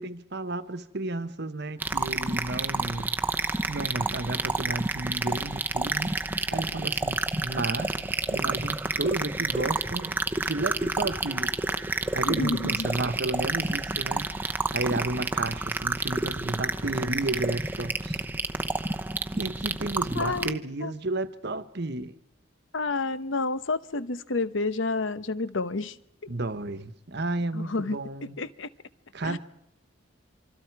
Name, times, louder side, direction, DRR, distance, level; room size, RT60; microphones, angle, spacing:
voice 1, 0.0-3.1 3.7-6.2 6.5-7.9 8.3-11.5 11.9-14.3 14.7-18.2 19.3-22.1 26.3-28.4 29.1-29.4, right 2 dB, 55° right, 1.2 m, -32 dB
sound 1, 1.8-20.5, right 2 dB, 10° right, 0.8 m, -29 dB
voice 2, 12.2-12.9 20.1-20.9 22.7-26.0 27.5-28.0 28.4-28.7 29.2-29.4, left 3 dB, 65° left, 0.9 m, -29 dB
25.5 x 25.5 x 4.7 m
head